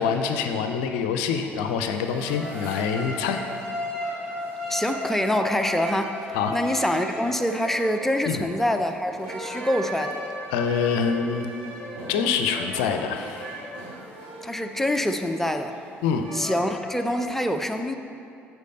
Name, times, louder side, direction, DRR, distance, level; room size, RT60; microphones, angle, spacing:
voice 1, 0.0-3.4 6.3-6.5 8.3-8.4 10.5-11.5 12.1-13.7 16.0-16.2, left 6 dB, 75° left, 6 dB, 0.5 m, -25 dB
sound 1, 1.5-17.2, equal, 75° right, 2.0 m, -36 dB
voice 2, 4.7-10.2 14.4-15.8 16.3-18.0, left 1 dB, 5° left, 6 dB, 0.6 m, -25 dB
8.2 x 4.6 x 5.4 m, 2.6 s
hypercardioid pair, 55°, 6 cm